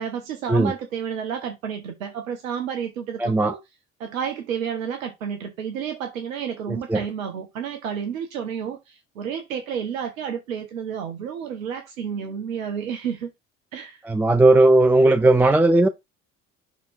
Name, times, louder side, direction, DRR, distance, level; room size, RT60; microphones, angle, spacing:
voice 1, 0.0-3.6 4.0-13.3 13.7-14.0, right 7 dB, 75° right, 0.9 m, -31 dB
voice 2, 3.2-3.5 6.7-7.0 14.0-15.9, right 2 dB, 5° right, 0.3 m, -17 dB
5.9 x 3.6 x 4.5 m
figure-of-eight pair, 55°, 40 cm